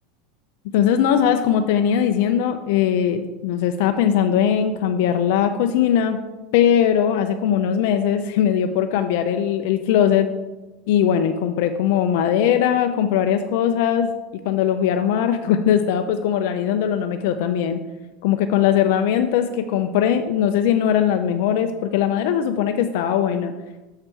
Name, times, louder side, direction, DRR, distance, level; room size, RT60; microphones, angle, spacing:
voice 1, 0.7-6.2 6.5-10.3 10.9-14.1 14.5-17.8 18.2-23.5, left 9 dB, 60° left, 7 dB, 0.5 m, -20 dB
6.6 x 4.5 x 6.0 m, 1.1 s
supercardioid pair, 170°, 0 cm